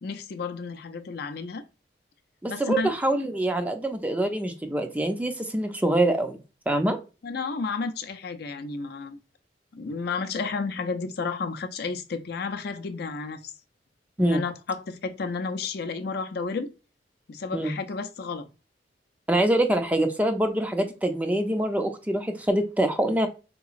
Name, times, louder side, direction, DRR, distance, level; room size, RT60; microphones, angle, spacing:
voice 1, 0.0-1.6 2.5-2.9 7.2-9.2 9.7-13.5 14.2-16.7 17.3-18.5, left 4 dB, 60° left, 0.4 m, -32 dB
voice 2, 2.4-6.4 6.7-7.0 14.2-14.4 17.5-17.8 19.3-23.3, right 1 dB, 10° right, 0.4 m, -25 dB
3.8 x 2.9 x 2.4 m
head